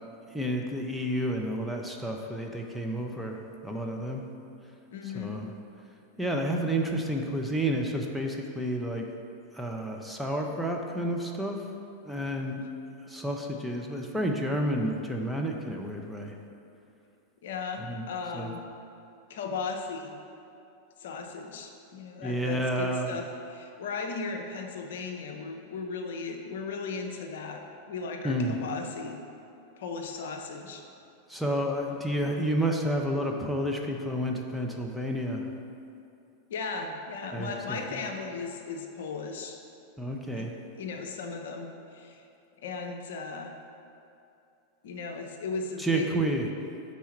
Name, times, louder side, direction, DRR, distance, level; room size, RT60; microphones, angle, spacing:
voice 1, 0.3-4.2 5.0-5.5 6.2-9.1 9.5-11.6 12.0-12.6 13.1-16.4 17.8-18.1 18.3-18.5 22.2-23.2 28.2-28.6 31.3-35.5 37.3-38.1 40.0-40.5 45.8-46.5, right 1 dB, ahead, 0 dB, 0.5 m, -30 dB
voice 2, 4.9-5.4 17.4-18.6 19.3-20.2 21.0-29.2 29.8-30.8 36.5-39.6 40.3-40.4 40.8-42.2 42.6-43.5 44.8-46.1, left 4 dB, 60° left, 3 dB, 0.5 m, -36 dB
4.6 x 4.2 x 5.7 m, 2.6 s
figure-of-eight pair, 90°, 0 cm